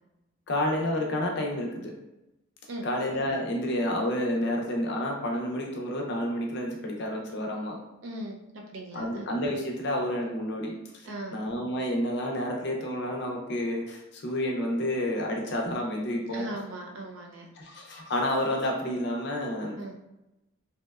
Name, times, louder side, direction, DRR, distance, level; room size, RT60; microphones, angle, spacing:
voice 1, 0.5-1.9 2.8-7.8 8.9-16.7 17.6-19.8, left 1 dB, 55° left, 0 dB, 0.5 m, -30 dB
voice 2, 8.0-9.3 11.1-11.4 16.3-17.5 19.8-19.9, right 1 dB, 65° right, 1 dB, 0.4 m, -39 dB
2.7 x 2.1 x 2.3 m, 0.94 s
head